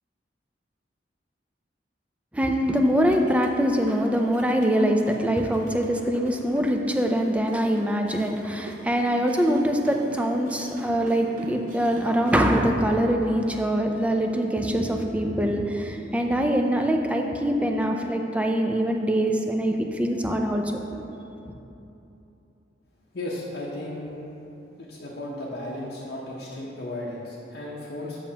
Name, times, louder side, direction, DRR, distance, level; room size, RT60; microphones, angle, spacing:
voice 1, 2.3-21.0, equal, 5° right, 3 dB, 0.4 m, -23 dB
sound 1, 3.0-12.5, right 1 dB, 45° right, 0.7 m, -45 dB
voice 2, 23.1-24.2 24.8-28.2, left 1 dB, 55° left, -5 dB, 0.7 m, -35 dB
7.3 x 6.9 x 2.8 m, 2.9 s
head